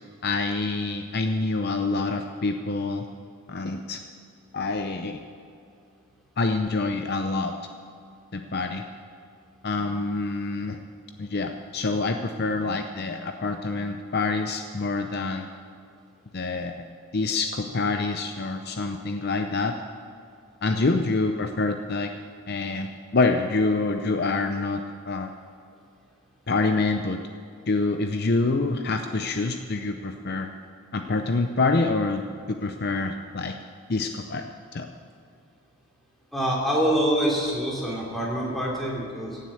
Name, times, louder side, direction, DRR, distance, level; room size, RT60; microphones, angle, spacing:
voice 1, 0.2-3.1 3.5-4.0 4.5-5.2 6.4-7.5 8.3-8.9 9.6-10.8 11.2-15.5 16.3-16.9 17.1-19.8 20.6-22.1 22.5-25.3 26.5-27.2 27.7-30.5 30.9-33.6 33.9-34.4 34.7-34.9, left 3 dB, 45° left, 6 dB, 0.6 m, -26 dB
voice 2, 36.3-39.4, right 1 dB, ahead, -4 dB, 2.9 m, -25 dB
16.0 x 7.7 x 8.5 m, 2.4 s
head